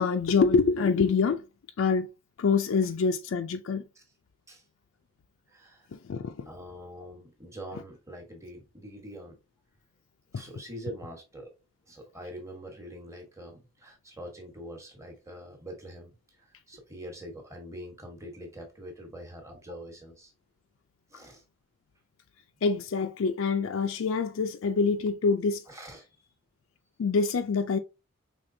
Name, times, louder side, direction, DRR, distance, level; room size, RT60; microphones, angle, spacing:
voice 1, 0.0-1.4 1.8-2.1 2.4-3.8 5.9-6.5 10.3-10.4 22.6-25.6 27.0-27.8, left 5 dB, 70° left, 0.4 m, -25 dB
voice 2, 5.5-5.9 6.5-9.4 10.3-11.5 11.9-20.3 21.1-21.4 25.7-26.1, equal, 15° right, 1.2 m, -44 dB
5.1 x 3.4 x 2.7 m
head